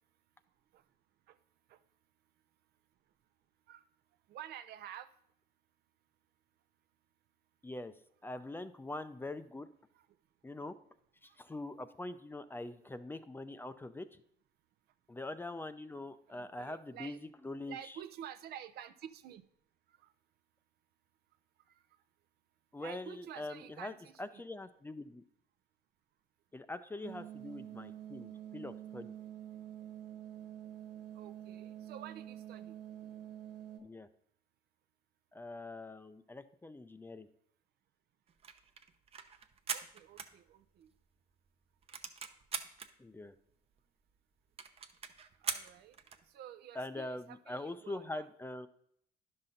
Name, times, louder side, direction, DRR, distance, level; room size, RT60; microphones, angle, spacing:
voice 1, 4.3-5.1 9.9-10.0 11.3-11.4 16.3-17.2 17.7-19.4 19.9-20.1 21.7-21.8 22.8-24.4 31.1-32.8 39.7-40.9 45.4-46.0 46.3-48.3, right 10 dB, 70° right, 10 dB, 0.6 m, -50 dB
voice 2, 7.6-7.9 8.2-9.7 10.4-10.7 11.2-14.2 15.1-18.0 22.7-25.2 26.5-29.1 33.8-34.1 35.3-37.3 43.0-43.3 46.7-48.7, left 2 dB, 15° left, 11 dB, 0.4 m, -43 dB
sound 1, 27.0-33.8, right 11 dB, 90° right, 1.5 m, -47 dB
sound 2, 38.3-41.0 41.3-41.4 41.6-42.9 43.5-43.6 43.8-43.9 44.2-44.3 44.6-46.3, right 6 dB, 35° right, 0.7 m, -42 dB
11.0 x 5.8 x 3.9 m, 0.69 s
cardioid pair, 110°, 17 cm